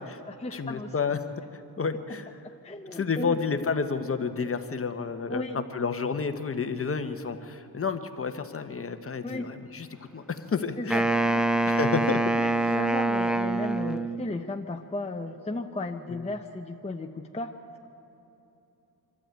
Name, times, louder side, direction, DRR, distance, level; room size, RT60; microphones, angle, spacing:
voice 1, 0.0-0.9 2.6-3.4 5.3-5.6 9.2-9.5 10.8-11.0 11.3-11.9 12.4-17.5, left 2 dB, 15° left, 3 dB, 0.8 m, -35 dB
voice 2, 0.5-2.4 2.9-9.9 10.1-11.1 11.6-12.2 12.6-12.8 13.8-14.0 16.1-16.2, left 5 dB, 35° left, 8 dB, 1.1 m, -30 dB
Wind instrument woodwind instrument, 10.9-14.4, right 2 dB, ahead, 0.4 m, -25 dB
25.0 x 12.0 x 9.0 m, 2.9 s
cardioid pair, 105°, 41 cm